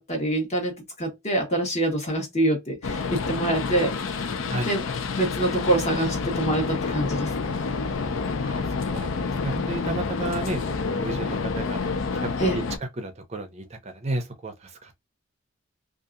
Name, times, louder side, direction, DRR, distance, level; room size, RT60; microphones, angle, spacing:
voice 1, 0.0-4.2 4.7-4.8 5.2-7.5 12.4-12.6, right 1 dB, 35° left, 1.2 m, -25 dB
sound 1, 2.8-12.8, left 4 dB, 90° left, 0.5 m, -28 dB
voice 2, 8.4-11.8 12.2-12.3 12.5-12.6 13.0-15.0, right 2 dB, 35° right, 0.5 m, -33 dB
2.7 x 2.4 x 2.4 m
head